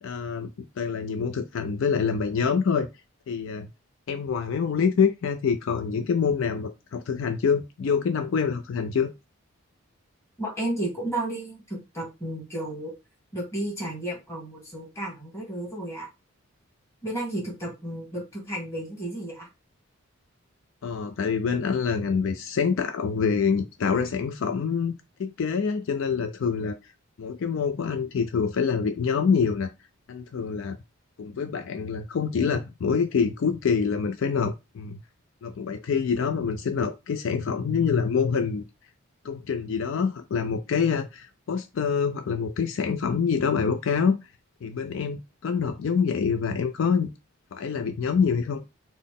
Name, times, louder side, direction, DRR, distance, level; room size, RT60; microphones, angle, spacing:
voice 1, 0.0-0.5 0.8-2.9 3.3-3.7 4.1-9.1 20.8-26.7 27.2-29.7 30.1-30.8 31.2-35.0 35.4-38.6 39.2-44.2 44.6-47.1 47.5-48.6, left 6 dB, 65° left, 0.4 m, -26 dB
voice 2, 10.4-12.9 13.3-16.1 17.0-19.5, right 1 dB, 15° left, 1.5 m, -32 dB
3.9 x 2.0 x 3.5 m
head